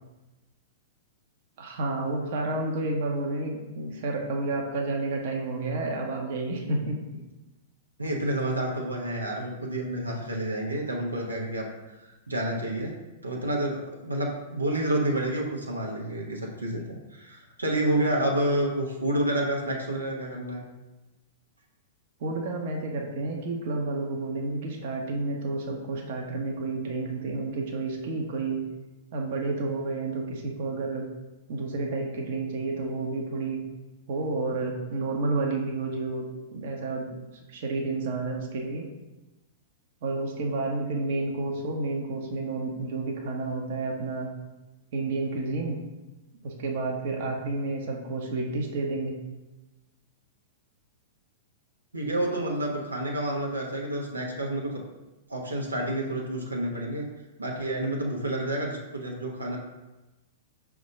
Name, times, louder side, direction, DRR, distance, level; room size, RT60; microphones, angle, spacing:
voice 1, 1.6-7.0 22.2-28.6 29.1-31.1 31.5-33.6 34.1-37.1 37.5-38.8 40.0-44.3 44.9-45.8 46.4-49.2, right 3 dB, 55° right, 0 dB, 1.0 m, -30 dB
voice 2, 8.0-12.0 12.3-12.9 13.2-20.6 51.9-54.8 55.3-57.1 57.4-59.6, right 1 dB, 85° right, -2 dB, 1.0 m, -29 dB
5.2 x 3.5 x 5.2 m, 1.1 s
figure-of-eight pair, 100°, 0 cm